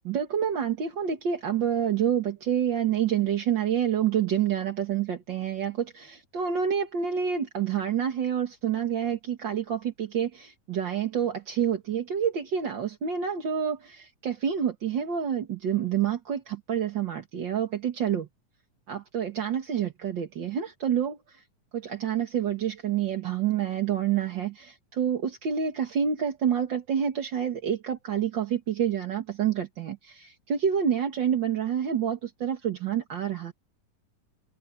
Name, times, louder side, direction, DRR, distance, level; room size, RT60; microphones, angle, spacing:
voice 1, 0.0-18.3 18.9-21.4 21.7-33.5, right 8 dB, 45° right, 1.6 m, -28 dB
omnidirectional pair, 4.0 m